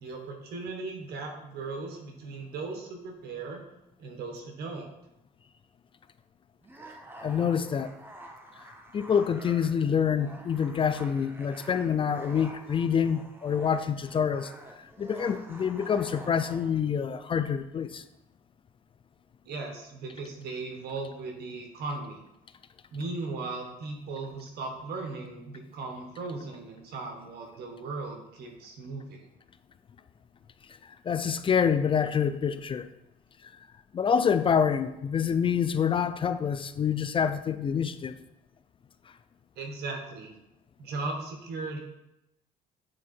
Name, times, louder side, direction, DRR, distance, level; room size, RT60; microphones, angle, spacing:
voice 1, 0.0-3.6 4.0-4.9 19.4-22.2 22.9-29.3 39.6-40.3 40.8-41.8, right 3 dB, 70° right, 1.5 m, -37 dB
sound 1, 6.6-16.8, right 1 dB, 10° right, 0.9 m, -48 dB
voice 2, 7.2-7.9 8.9-14.5 14.8-18.0 30.8-32.9 33.9-38.2, left 7 dB, 30° left, 0.4 m, -27 dB
8.5 x 3.7 x 4.4 m
cardioid pair, 110°, 17 cm